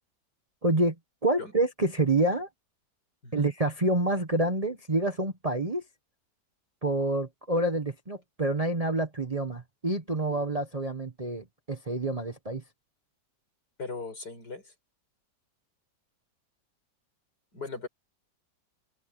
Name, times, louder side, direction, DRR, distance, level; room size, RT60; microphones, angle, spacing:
voice 1, 0.6-0.9 1.2-2.5 3.3-5.8 6.8-12.6, right 2 dB, 25° right, 1.2 m, -27 dB
voice 2, 3.2-3.5 13.8-14.7 17.5-17.9, left 4 dB, 70° left, 7.0 m, -38 dB
open air
omnidirectional pair, 1.8 m